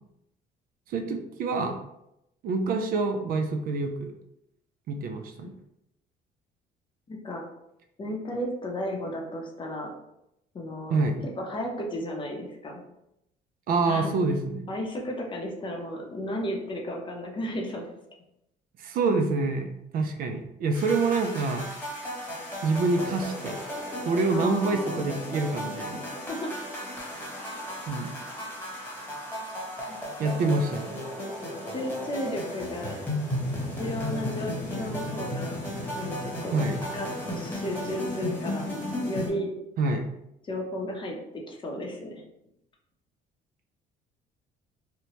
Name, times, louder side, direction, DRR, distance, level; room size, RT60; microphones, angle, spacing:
voice 1, 0.9-1.8 2.4-4.1 4.9-5.5 10.9-11.2 13.7-14.7 18.8-21.7 22.6-23.6 24.0-26.1 27.9-28.1 30.2-31.0 36.5-36.8 39.8-40.1, right 3 dB, 60° right, 6 dB, 0.4 m, -26 dB
voice 2, 7.1-7.4 8.0-9.9 10.5-11.0 11.2-12.8 13.8-14.1 14.7-17.8 24.3-25.2 26.3-26.5 29.9-30.4 31.7-33.0 33.8-35.6 35.9-36.6 36.9-38.7 39.1-39.5 40.4-42.2, left 1 dB, 30° left, 0 dB, 0.6 m, -34 dB
sound 1, 20.7-39.3, equal, 10° left, 1.0 m, -35 dB
2.8 x 2.1 x 2.9 m, 0.83 s
cardioid pair, 110°, 17 cm